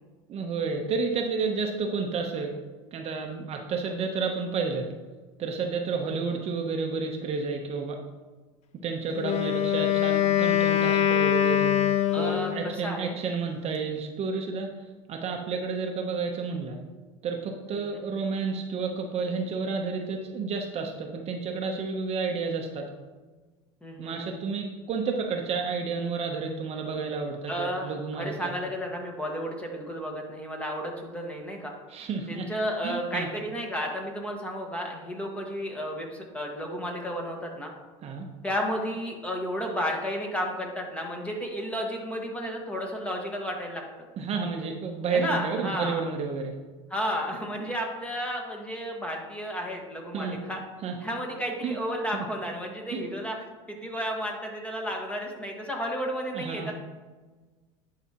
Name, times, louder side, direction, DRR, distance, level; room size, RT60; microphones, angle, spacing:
voice 1, 0.3-2.5 2.9-4.9 5.4-8.0 8.8-11.8 12.1-14.7 15.1-16.8 17.2-22.9 24.0-28.5 31.9-32.4 32.8-33.3 38.0-38.3 44.2-46.5 50.1-50.4 50.8-51.0 51.6-51.8 52.1-52.3 52.9-53.0 56.3-56.7, right 4 dB, 40° right, 2 dB, 0.8 m, -31 dB
Wind instrument woodwind instrument, 9.1-12.6, left 11 dB, 40° left, 0.6 m, -23 dB
voice 2, 12.1-13.1 17.7-18.0 23.8-24.2 27.5-31.7 32.3-37.7 38.4-43.8 45.1-46.0 46.9-50.6 51.0-53.4 53.7-56.7, equal, 10° left, 1 dB, 1.5 m, -32 dB
10.5 x 4.9 x 2.9 m, 1.3 s
supercardioid pair, 105°, 16 cm